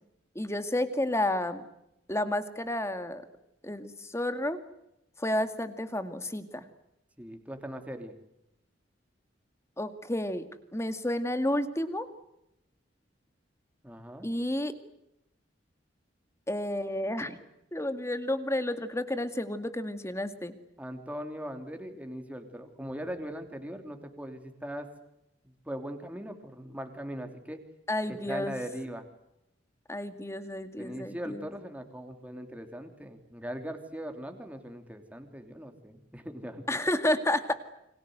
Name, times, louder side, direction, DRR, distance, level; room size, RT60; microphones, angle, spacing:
voice 1, 0.4-1.6 2.1-3.2 3.6-4.6 5.2-6.6 9.8-10.5 10.7-12.1 14.2-14.7 16.5-17.4 17.7-20.5 27.9-28.5 29.9-31.4 36.7-37.5, left 1 dB, 15° left, 10 dB, 2.1 m, -31 dB
voice 2, 7.2-8.1 13.8-14.3 20.8-24.9 25.4-27.6 28.1-29.1 30.8-36.8, equal, 10° right, 5 dB, 3.1 m, -40 dB
29.0 x 25.5 x 8.0 m, 0.85 s
head